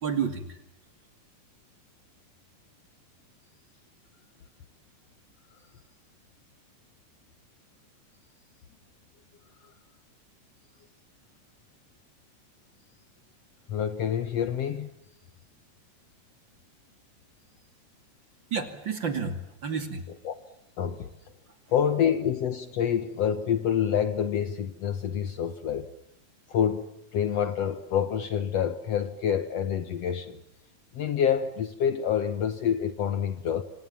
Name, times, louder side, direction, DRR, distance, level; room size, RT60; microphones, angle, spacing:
voice 1, 0.0-0.6 18.5-20.1, right 6 dB, 40° right, 2.8 m, -30 dB
voice 2, 13.7-14.9 20.3-20.4 20.8-21.1 21.7-25.9 26.5-30.4 30.9-33.6, left 8 dB, 60° left, 1.9 m, -27 dB
28.0 x 26.5 x 7.3 m
omnidirectional pair, 3.7 m